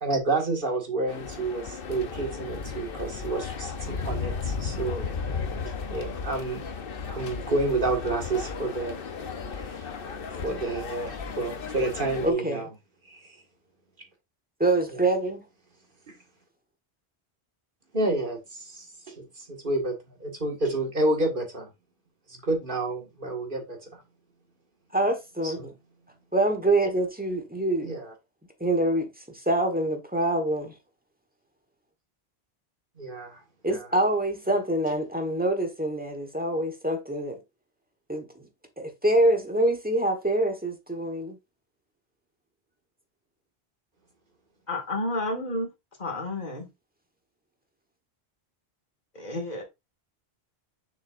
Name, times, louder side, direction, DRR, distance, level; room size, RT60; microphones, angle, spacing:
voice 1, 0.0-5.1 5.9-6.6 7.1-9.0 9.6-9.9 10.4-12.7 13.1-13.3 14.9-15.0 16.1-16.2 17.9-21.7 22.3-23.8 25.4-25.7 27.8-28.1 33.0-33.4 33.7-33.9, right 2 dB, 55° right, 2.2 m, -29 dB
sound 1, 1.1-12.3, left 5 dB, 60° left, 1.1 m, -35 dB
voice 2, 12.2-12.7 14.6-15.4 24.9-25.7 26.3-27.9 28.6-29.1 29.4-30.7 33.6-37.4 38.1-38.3 38.8-41.3, right 1 dB, 10° right, 1.4 m, -25 dB
voice 3, 44.7-45.7 46.0-46.7 49.1-49.6, left 1 dB, 45° left, 2.3 m, -30 dB
6.7 x 6.4 x 2.6 m
omnidirectional pair, 1.1 m